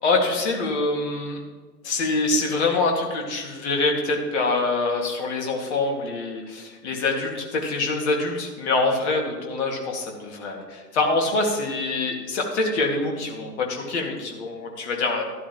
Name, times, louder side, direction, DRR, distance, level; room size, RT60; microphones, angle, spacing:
voice 1, 0.0-1.4 1.8-15.2, left 3 dB, 45° left, 1 dB, 2.1 m, -25 dB
12.0 x 12.0 x 3.0 m, 1.3 s
figure-of-eight pair, 115°, 49 cm